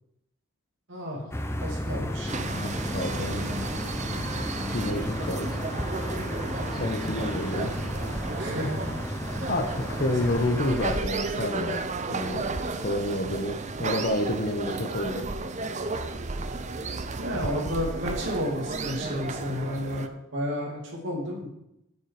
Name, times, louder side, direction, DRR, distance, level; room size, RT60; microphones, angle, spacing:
voice 1, 0.9-1.2 1.6-2.3 3.3-3.4 8.3-8.9 17.2-20.0 20.3-21.5, equal, 55° right, -3 dB, 2.6 m, -31 dB
sound 1, 1.3-11.0, left 1 dB, 10° left, 0.6 m, -33 dB
sound 2, 2.3-20.1, right 3 dB, 35° right, 0.6 m, -33 dB
voice 2, 2.9-3.4 4.7-5.5 6.7-7.7 9.5-11.8 12.1-12.4 12.8-15.2, left 1 dB, 40° left, 5 dB, 1.0 m, -29 dB
14.0 x 5.5 x 4.9 m, 0.83 s
head